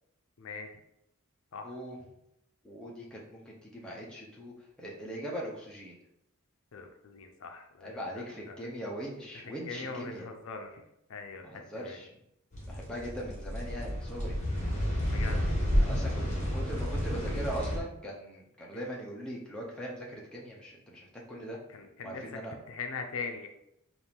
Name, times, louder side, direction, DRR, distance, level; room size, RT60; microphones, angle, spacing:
voice 1, 0.4-0.8 1.5-1.7 6.7-8.6 9.7-10.8 11.1-12.0 15.1-15.5 18.7-18.9 21.7-23.5, left 4 dB, 70° left, 4 dB, 0.5 m, -41 dB
voice 2, 1.6-2.0 2.6-6.0 7.8-10.3 11.4-12.1 12.7-14.4 15.8-21.6 22.0-22.5, right 1 dB, 5° left, -4 dB, 0.6 m, -40 dB
sound 1, 12.5-17.8, equal, 35° left, 1.0 m, -30 dB
4.3 x 2.5 x 3.4 m, 0.80 s
head